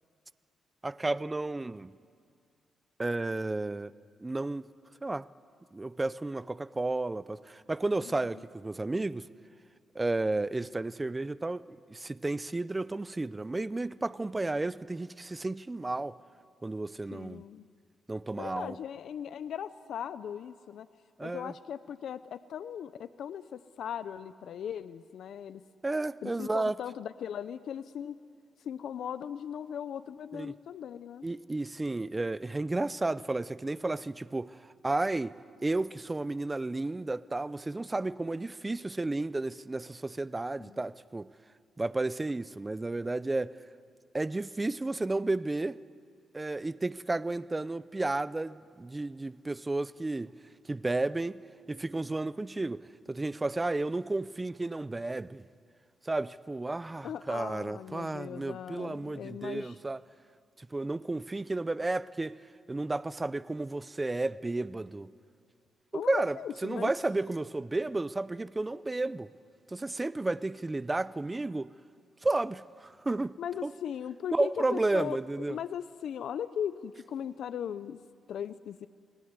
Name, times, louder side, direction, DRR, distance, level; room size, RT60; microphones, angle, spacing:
voice 1, 0.8-1.9 3.0-3.9 4.2-4.7 5.0-5.3 5.7-9.3 9.9-16.2 16.6-17.4 18.1-18.8 21.2-21.5 25.8-26.7 30.3-30.5 31.2-34.6 34.8-35.3 35.6-41.3 41.8-43.6 44.1-45.8 46.3-50.3 50.7-51.4 51.7-52.8 53.1-55.4 56.1-60.0 60.6-62.4 62.7-65.1 65.9-66.4 66.6-69.3 69.7-71.7 72.2-73.4 73.6-73.7 74.3-75.6, right 2 dB, 15° right, 0.6 m, -32 dB
voice 2, 8.0-8.4 17.1-17.6 18.3-20.9 21.2-25.6 26.2-28.2 28.6-31.2 40.6-40.8 57.0-59.8 65.9-66.9 73.4-75.2 75.5-78.0 78.3-78.9, left 9 dB, 70° left, 0.6 m, -38 dB
28.0 x 19.5 x 9.7 m
cardioid pair, 120°, 0 cm